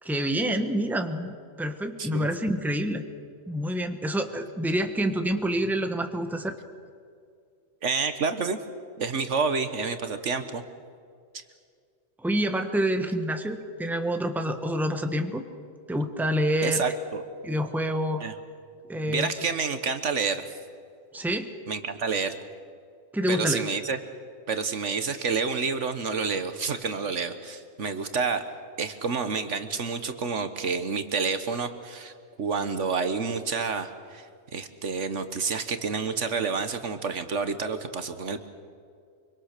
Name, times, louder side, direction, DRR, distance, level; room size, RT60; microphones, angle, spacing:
voice 1, 0.0-3.0 3.5-6.6 12.2-15.4 15.9-16.8 17.4-18.2 18.9-19.5 21.1-21.5 23.1-23.7, equal, ahead, 6 dB, 1.3 m, -27 dB
voice 2, 7.8-8.6 9.0-10.6 11.3-11.4 16.6-17.2 18.2-18.3 19.0-20.6 21.7-22.4 23.3-24.0 24.5-32.1 32.4-38.5, right 5 dB, 65° right, 9 dB, 1.5 m, -29 dB
25.0 x 24.5 x 6.7 m, 2.2 s
omnidirectional pair, 1.4 m